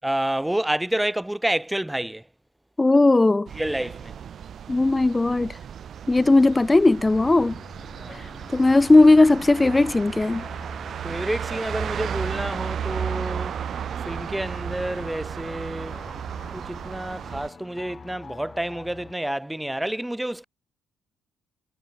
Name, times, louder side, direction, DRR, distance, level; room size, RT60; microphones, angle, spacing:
voice 1, 0.0-2.2 3.6-4.2 8.0-8.2 11.0-13.6 14.0-16.0 16.5-20.4, right 1 dB, 5° right, 0.9 m, -29 dB
voice 2, 2.8-3.5 4.7-5.6 6.1-7.6 8.5-10.5, left 2 dB, 20° left, 0.3 m, -17 dB
sound 1, 3.5-17.5, right 8 dB, 60° right, 1.0 m, -34 dB
sound 2, 7.1-19.1, left 5 dB, 40° left, 3.9 m, -46 dB
cardioid pair, 90°, 0 cm